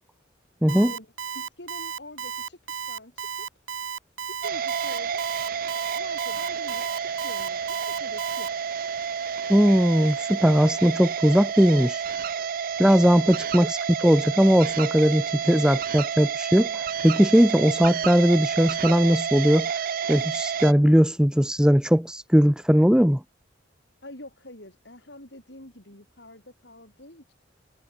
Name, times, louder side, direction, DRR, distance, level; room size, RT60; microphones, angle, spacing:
Alarm, 0.7-8.5, right 7 dB, 85° right, 0.9 m, -34 dB
voice 1, 0.8-3.5 4.3-5.3 5.9-8.6 13.1-13.2 24.0-27.3, left 1 dB, 65° left, 7.6 m, -46 dB
sound 1, 4.4-20.7, right 7 dB, 50° right, 0.4 m, -30 dB
voice 2, 9.5-12.0 12.8-13.7 14.0-19.7 20.1-23.2, equal, 5° right, 0.9 m, -19 dB
head